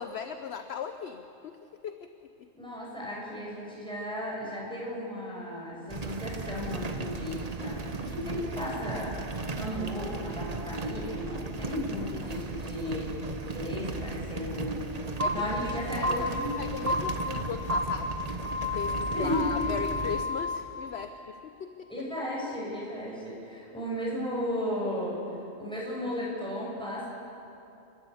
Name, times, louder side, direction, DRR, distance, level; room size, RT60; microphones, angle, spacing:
voice 1, 0.0-1.6 1.8-2.1 2.4-2.5 12.2-12.4 15.2-15.3 15.6-16.3 16.6-18.1 18.7-21.9, left 7 dB, 60° left, 8 dB, 1.0 m, -38 dB
voice 2, 2.5-14.8 15.3-16.6 19.1-19.5 21.9-25.2 25.6-27.1, left 1 dB, 5° left, -6 dB, 6.8 m, -35 dB
sound 1, 5.9-20.3, right 3 dB, 30° right, 1.1 m, -36 dB
sound 2, 15.2-15.3 16.0-16.1 16.9-17.0 17.7-17.8 18.4-20.6, left 2 dB, 70° right, 2.4 m, -30 dB
29.5 x 12.0 x 8.4 m, 2.8 s
omnidirectional pair, 1.3 m